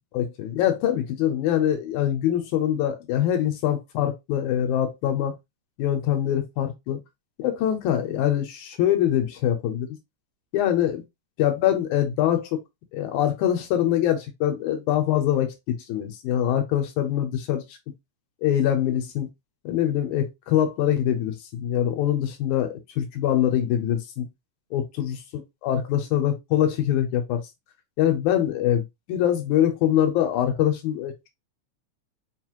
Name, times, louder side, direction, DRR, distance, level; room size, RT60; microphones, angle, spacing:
voice 1, 0.1-5.3 5.8-7.0 7.4-9.9 10.5-11.0 11.4-12.6 12.9-17.6 18.4-19.3 19.6-24.3 24.7-25.2 25.6-27.4 28.0-31.3, left 11 dB, 90° left, 2.3 m, -24 dB
5.2 x 2.5 x 2.9 m
omnidirectional pair, 3.3 m